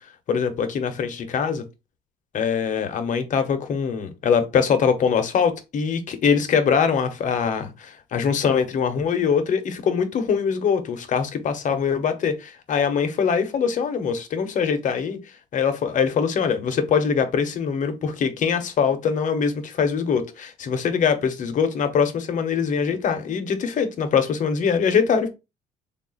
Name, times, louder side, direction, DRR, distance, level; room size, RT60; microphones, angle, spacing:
voice 1, 0.3-1.6 2.3-15.2 15.5-25.3, left 6 dB, 50° left, 0.8 m, -23 dB
3.6 x 2.4 x 3.8 m
cardioid pair, 110°, 17 cm